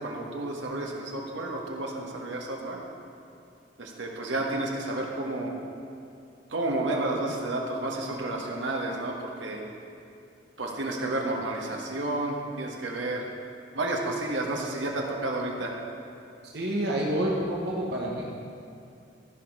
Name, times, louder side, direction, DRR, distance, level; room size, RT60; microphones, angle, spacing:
voice 1, 0.0-2.8 3.8-5.5 6.5-9.6 10.6-13.2 13.7-15.7, right 2 dB, 75° right, 0 dB, 1.4 m, -31 dB
voice 2, 16.5-18.2, right 1 dB, 60° right, -3 dB, 1.2 m, -28 dB
14.5 x 5.1 x 5.4 m, 2.5 s
head